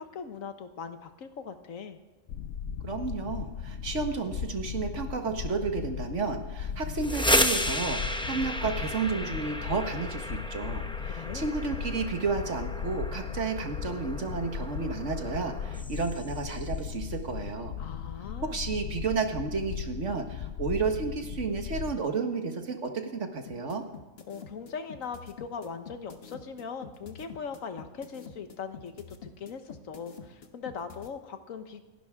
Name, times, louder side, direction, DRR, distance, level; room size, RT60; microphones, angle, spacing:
voice 1, 0.0-2.0 11.0-11.5 17.8-18.6 24.3-31.8, left 6 dB, 90° left, 8 dB, 1.5 m, -40 dB
sound 1, 2.3-21.9, left 8 dB, 70° left, 1.0 m, -37 dB
voice 2, 2.8-17.7 18.5-23.8, right 4 dB, 65° right, 5 dB, 1.8 m, -32 dB
sound 2, 6.8-16.6, left 1 dB, 5° left, 0.5 m, -33 dB
sound 3, 23.5-31.1, left 6 dB, 50° left, 1.3 m, -46 dB
29.5 x 11.0 x 3.6 m, 1.2 s
omnidirectional pair, 1.4 m